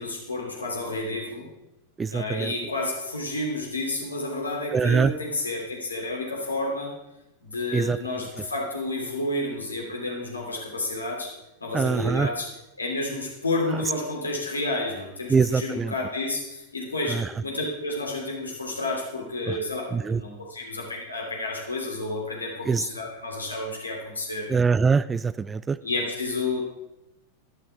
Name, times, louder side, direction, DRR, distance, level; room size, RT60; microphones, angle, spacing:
voice 1, 0.0-1.5 2.1-6.9 7.4-11.3 11.6-12.5 12.8-19.8 20.1-24.5 25.8-26.6, left 2 dB, 80° left, 0 dB, 3.0 m, -30 dB
voice 2, 2.0-2.5 4.7-5.1 7.7-8.0 11.7-12.3 15.3-15.9 17.1-17.3 19.5-19.6 19.9-20.2 22.7-22.9 24.5-25.8, right 5 dB, 15° right, 16 dB, 0.3 m, -23 dB
13.0 x 12.5 x 3.6 m, 0.91 s
figure-of-eight pair, 90°, 0 cm